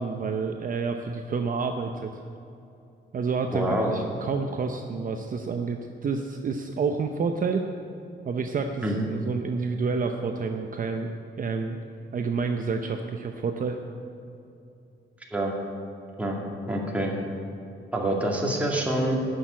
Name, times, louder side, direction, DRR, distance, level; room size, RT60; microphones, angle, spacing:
voice 1, 0.0-2.1 3.1-7.7 8.2-11.1 11.4-11.8 12.1-13.8, right 4 dB, 45° right, 5 dB, 0.7 m, -29 dB
voice 2, 3.5-3.9 8.8-9.0 15.3-15.5 16.2-16.4 16.7-17.1 17.9-19.2, right 1 dB, 5° right, -2 dB, 2.2 m, -26 dB
12.0 x 6.5 x 9.4 m, 2.7 s
cardioid pair, 125°, 19 cm